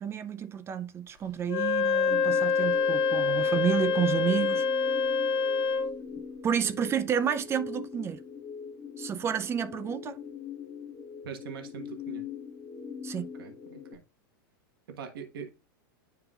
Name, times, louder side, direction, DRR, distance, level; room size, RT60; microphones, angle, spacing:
voice 1, 0.0-4.7 6.4-8.2 9.0-10.2 13.0-13.3, right 8 dB, 20° right, 0.5 m, -30 dB
Wind instrument woodwind instrument, 1.5-5.9, left 5 dB, 45° left, 1.7 m, -26 dB
sound 1, 2.1-13.9, left 6 dB, 25° left, 1.1 m, -42 dB
voice 2, 11.2-12.2 13.4-14.0 14.9-15.5, right 7 dB, 75° right, 1.4 m, -42 dB
9.7 x 4.6 x 2.4 m
hypercardioid pair, 130°, 12 cm